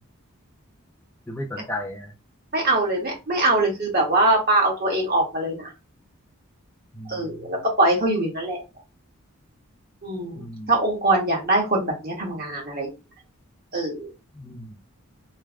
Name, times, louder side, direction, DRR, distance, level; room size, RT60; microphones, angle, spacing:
voice 1, 1.3-2.1 6.9-7.5 10.4-10.7 14.3-14.9, left 1 dB, 10° left, 2 dB, 0.5 m, -35 dB
voice 2, 2.5-5.7 7.1-8.6 10.0-10.4 10.7-12.9 13.7-14.1, right 2 dB, 45° right, -1 dB, 1.5 m, -22 dB
3.2 x 2.3 x 3.5 m, 0.26 s
head